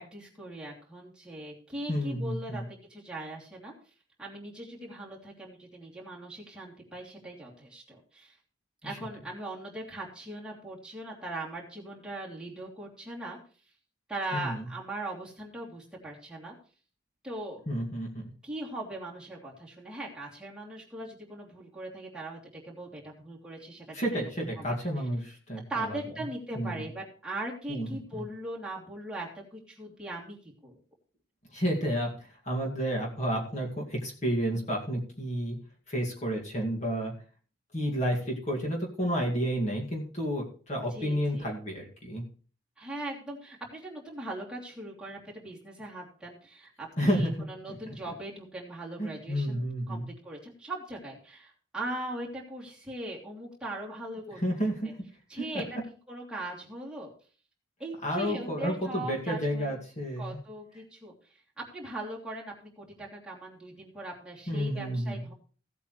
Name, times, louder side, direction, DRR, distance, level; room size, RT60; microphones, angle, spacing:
voice 1, 0.0-2.6 2.9-3.7 4.2-8.4 8.8-13.4 14.1-16.5 17.2-17.6 18.4-24.2 24.5-24.6 25.7-30.4 30.6-30.8 40.9-41.5 42.8-54.4 54.8-54.9 55.3-55.8 56.1-57.1 57.8-59.8 60.2-61.1 61.6-65.3, right 1 dB, 5° right, -5 dB, 3.0 m, -40 dB
voice 2, 1.9-2.6 8.8-9.0 14.3-14.6 17.7-18.2 23.9-26.0 26.6-26.9 27.7-28.2 31.5-35.6 35.9-37.1 37.7-42.2 47.0-47.5 49.0-50.1 54.4-54.9 55.4-55.6 58.0-60.4 64.5-65.3, equal, 35° left, 0 dB, 2.3 m, -31 dB
17.0 x 8.3 x 3.2 m, 0.39 s
head